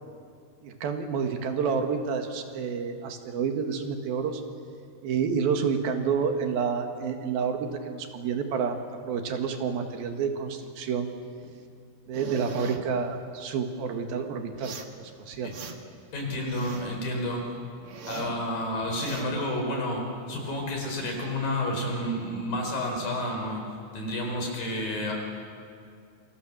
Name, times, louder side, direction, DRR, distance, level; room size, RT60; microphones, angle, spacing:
voice 1, 0.6-4.4 5.0-8.8 9.0-11.1 12.1-15.6, right 6 dB, 85° right, 5 dB, 3.7 m, -29 dB
sound 1, 12.1-12.8 14.5-15.0 15.3-16.0 16.3-17.0 17.4-18.4 18.8-19.3, right 5 dB, 50° right, 1.8 m, -40 dB
voice 2, 16.1-17.5 18.1-23.6 23.9-25.1, left 1 dB, 70° left, 1 dB, 6.6 m, -30 dB
28.0 x 25.0 x 7.5 m, 2.3 s
omnidirectional pair, 4.2 m